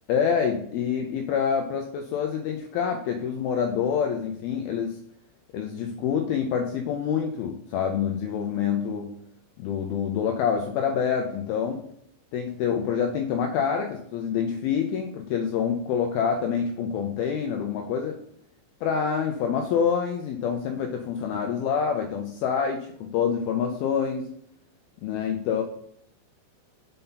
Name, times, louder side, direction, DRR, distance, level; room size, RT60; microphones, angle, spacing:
voice 1, 0.1-5.0 5.5-9.1 9.6-11.9 12.3-18.2 18.8-24.3 25.0-25.6, left 7 dB, 80° left, 4 dB, 2.2 m, -26 dB
5.6 x 5.5 x 3.9 m, 0.70 s
omnidirectional pair, 4.9 m